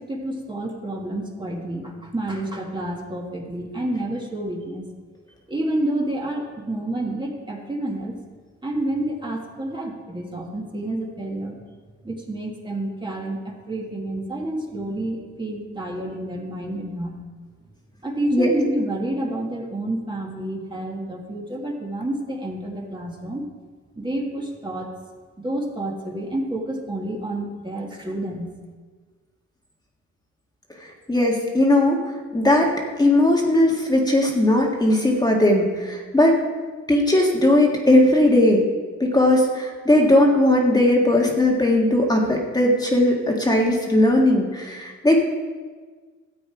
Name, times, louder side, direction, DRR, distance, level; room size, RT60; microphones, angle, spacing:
voice 1, 0.0-4.9 5.5-8.2 8.6-11.6 12.0-17.2 18.0-23.5 24.0-24.9 25.4-28.5, right 1 dB, 15° right, 0 dB, 1.7 m, -29 dB
voice 2, 31.1-32.0 32.3-32.7 33.0-36.4 36.9-38.6 39.0-45.2, left 1 dB, 15° left, -1 dB, 1.6 m, -18 dB
13.0 x 7.9 x 4.8 m, 1.5 s
cardioid pair, 90°, 30 cm